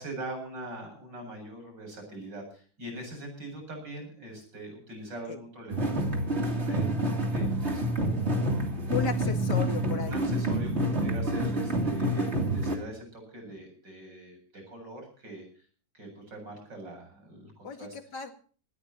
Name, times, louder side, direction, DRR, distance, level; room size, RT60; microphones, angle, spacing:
voice 1, 0.0-9.2 10.0-15.4 15.9-18.0, right 1 dB, 75° right, 4 dB, 8.6 m, -43 dB
sound 1, 5.7-12.8, right 1 dB, 35° right, 3.3 m, -28 dB
voice 2, 8.9-10.3 17.6-18.3, left 5 dB, 70° left, 6 dB, 2.6 m, -35 dB
19.5 x 18.5 x 3.0 m, 0.42 s
omnidirectional pair, 1.9 m